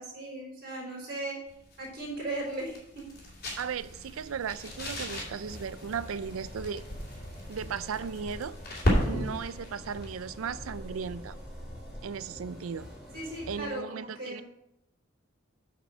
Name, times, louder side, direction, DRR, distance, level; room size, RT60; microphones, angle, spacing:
voice 1, 0.0-1.4 1.8-3.1 13.1-14.4, right 2 dB, 45° right, 3.7 m, -37 dB
sound 1, 1.5-12.1, equal, 50° left, 3.0 m, -36 dB
voice 2, 3.6-6.8 7.5-8.6 9.0-11.4 12.0-12.9 13.5-14.4, right 6 dB, 90° right, 0.4 m, -36 dB
sound 2, 4.6-13.7, equal, 5° right, 2.7 m, -45 dB
8.4 x 5.6 x 6.1 m
head